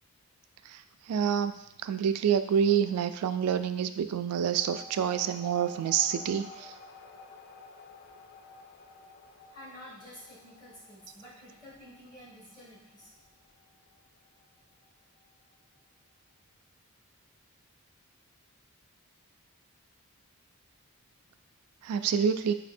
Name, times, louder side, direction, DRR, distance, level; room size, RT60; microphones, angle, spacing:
voice 1, 0.7-1.5 1.8-6.7 21.8-22.5, right 8 dB, 90° right, 11 dB, 0.3 m, -27 dB
sound 1, 4.6-15.5, left 3 dB, 50° left, 0.3 m, -51 dB
voice 2, 9.5-13.1 21.9-22.2, equal, 20° left, -8 dB, 1.6 m, -50 dB
4.3 x 2.7 x 4.2 m, 0.87 s
head